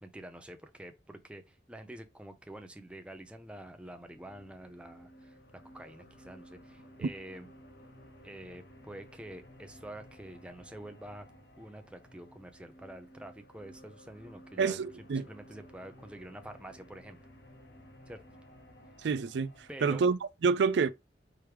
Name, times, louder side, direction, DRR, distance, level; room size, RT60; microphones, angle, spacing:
voice 1, 0.0-7.5 8.2-11.3 11.6-14.8 15.1-17.2 18.1-18.2 19.7-20.0, right 1 dB, 5° right, 0.6 m, -47 dB
sound 1, 3.1-20.1, equal, 65° left, 1.0 m, -55 dB
voice 2, 14.6-15.2 19.0-19.5 19.8-20.9, right 5 dB, 80° right, 0.4 m, -28 dB
4.9 x 3.1 x 3.3 m
head